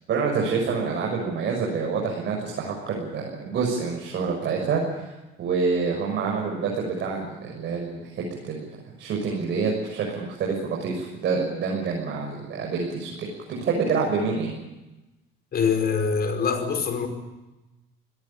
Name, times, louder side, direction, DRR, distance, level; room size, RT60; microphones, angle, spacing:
voice 1, 0.1-5.0 5.4-8.6 9.0-14.5, right 5 dB, 60° right, -1 dB, 6.5 m, -27 dB
voice 2, 15.5-17.1, left 6 dB, 50° left, 7 dB, 5.3 m, -24 dB
25.5 x 18.0 x 8.7 m, 1.0 s
cardioid pair, 110°, 21 cm